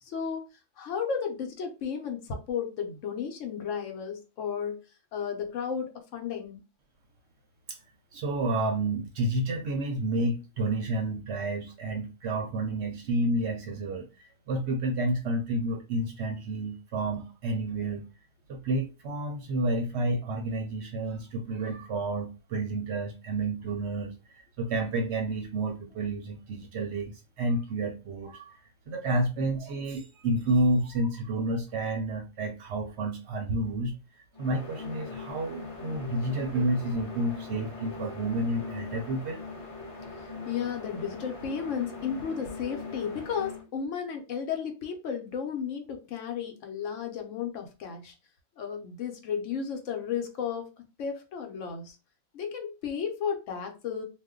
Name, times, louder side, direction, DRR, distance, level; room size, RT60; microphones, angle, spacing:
voice 1, 0.0-0.4 0.8-4.8 5.1-6.6 40.5-48.1 48.6-50.7 51.0-52.0 52.3-54.0, left 7 dB, 70° left, 1.0 m, -33 dB
voice 2, 8.1-18.1 18.5-28.6 28.9-33.9 34.4-39.4, right 1 dB, 65° right, 0.7 m, -30 dB
sound 1, 34.3-43.6, left 3 dB, 30° left, 0.8 m, -41 dB
2.5 x 2.1 x 3.5 m
omnidirectional pair, 1.4 m